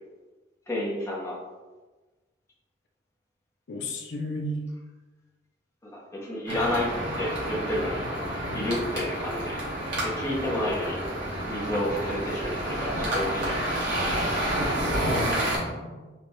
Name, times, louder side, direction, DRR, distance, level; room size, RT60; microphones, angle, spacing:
voice 1, 0.7-1.4 5.8-6.9 7.2-8.0 8.5-9.6 10.0-11.0 11.5-13.6, left 1 dB, 15° left, -5 dB, 0.7 m, -30 dB
voice 2, 3.7-4.6 15.0-16.1, left 1 dB, 70° left, 1 dB, 0.4 m, -33 dB
sound 1, 6.5-15.6, right 1 dB, 80° right, 1.3 m, -29 dB
4.4 x 2.1 x 3.0 m, 1.2 s
head